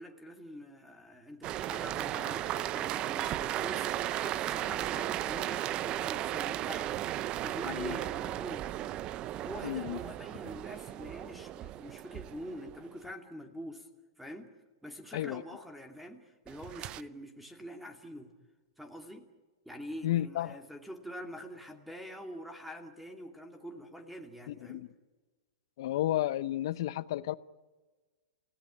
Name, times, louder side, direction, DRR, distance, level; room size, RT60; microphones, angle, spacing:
voice 1, 0.0-3.9 4.1-7.0 7.4-8.7 9.4-13.9 14.2-14.5 14.8-18.3 18.8-19.3 19.6-24.8, equal, ahead, 2.6 m, -45 dB
sound 1, 1.4-13.0 16.5-17.0, right 13 dB, 35° right, 0.8 m, -35 dB
voice 2, 9.6-10.0 15.1-15.4 20.0-20.6 24.5-24.9 25.8-27.3, left 13 dB, 65° left, 0.9 m, -32 dB
29.5 x 17.5 x 10.0 m
hypercardioid pair, 120°, 3 cm